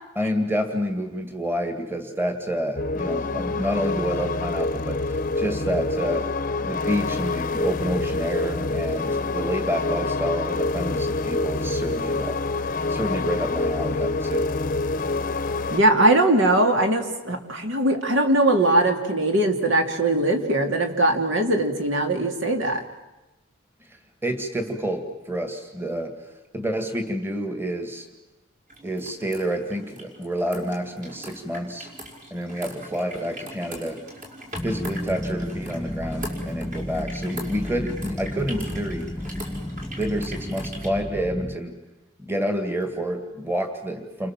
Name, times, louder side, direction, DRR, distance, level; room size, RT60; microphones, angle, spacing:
voice 1, 0.2-6.3 6.6-12.4 12.9-14.5 23.8-26.2 26.5-28.1 28.8-31.9 32.3-34.0 34.6-39.1 40.0-41.8 42.2-44.3, equal, 10° right, 6 dB, 2.2 m, -29 dB
sound 1, 2.8-15.8, left 3 dB, 40° left, 0.9 m, -26 dB
voice 2, 15.7-22.8, right 1 dB, 65° right, 5 dB, 3.0 m, -20 dB
sound 2, 28.7-40.9, equal, 40° right, 5.7 m, -41 dB
sound 3, 34.5-41.6, left 1 dB, 5° left, 1.4 m, -32 dB
29.5 x 26.0 x 7.5 m, 1.0 s
head